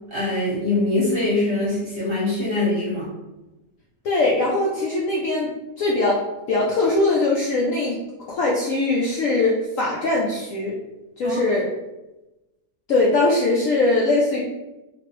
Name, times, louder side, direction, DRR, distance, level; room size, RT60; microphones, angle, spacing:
voice 1, 0.1-3.1 11.2-11.4, left 2 dB, 40° right, -7 dB, 1.0 m, -23 dB
voice 2, 4.0-6.2 6.5-8.0 8.3-10.8 11.2-11.7 12.9-14.4, left 2 dB, 70° left, -4 dB, 0.8 m, -21 dB
3.0 x 2.5 x 3.0 m, 1.0 s
omnidirectional pair, 1.8 m